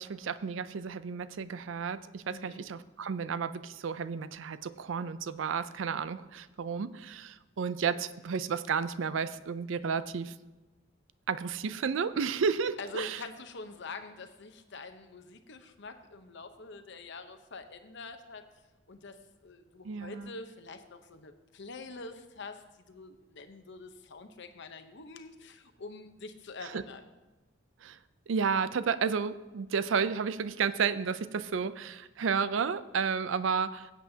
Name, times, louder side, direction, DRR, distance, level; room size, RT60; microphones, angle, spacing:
voice 1, 0.0-10.3 11.3-13.2 19.8-20.3 26.6-26.8 27.8-28.0 28.3-33.9, right 6 dB, 70° right, 14 dB, 0.4 m, -32 dB
voice 2, 2.3-2.6 12.8-18.4 18.9-27.0, left 3 dB, 60° left, 8 dB, 0.8 m, -45 dB
16.0 x 8.4 x 2.8 m, 1.1 s
head